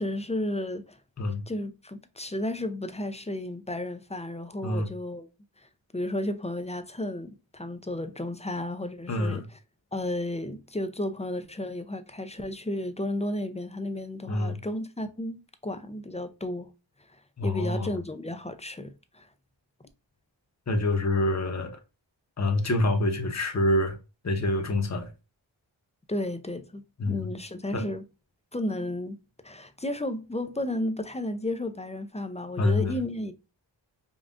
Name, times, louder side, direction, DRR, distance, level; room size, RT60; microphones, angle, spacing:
voice 1, 0.0-1.0 1.5-5.3 5.9-9.4 9.9-16.7 17.4-19.3 26.1-28.0 28.5-29.2 29.4-33.3, left 1 dB, 15° left, 0.4 m, -33 dB
voice 2, 9.1-9.4 14.3-14.6 17.4-18.0 20.7-21.8 22.4-24.0 24.2-25.1 27.0-27.3 27.7-27.9 32.6-33.0, left 2 dB, 35° left, 0.9 m, -26 dB
5.3 x 2.4 x 2.5 m
wide cardioid pair, 100°, 46 cm